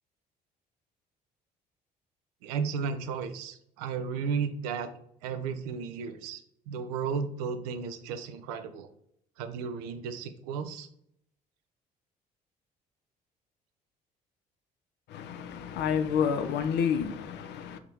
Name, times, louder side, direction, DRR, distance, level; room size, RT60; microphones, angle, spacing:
voice 1, 2.4-4.9 5.2-6.4 6.7-8.9 9.4-10.9, right 6 dB, 80° right, 0.5 m, -34 dB
voice 2, 15.1-17.8, left 7 dB, 60° left, 0.5 m, -29 dB
3.5 x 2.8 x 4.7 m
hypercardioid pair, 55°, 20 cm